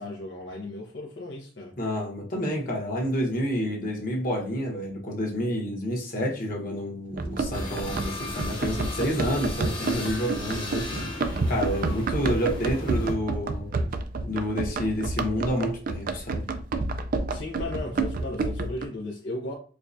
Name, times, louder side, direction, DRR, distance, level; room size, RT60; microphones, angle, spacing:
voice 1, 0.0-1.7 12.2-12.5 17.3-19.5, left 2 dB, 80° left, 0.8 m, -36 dB
voice 2, 1.8-13.7 14.2-16.4, equal, 50° left, 1.1 m, -29 dB
Run, 7.2-18.9, right 3 dB, 50° right, 0.4 m, -29 dB
sound 1, 7.5-13.1, left 2 dB, 25° left, 1.0 m, -37 dB
4.6 x 2.3 x 2.6 m
head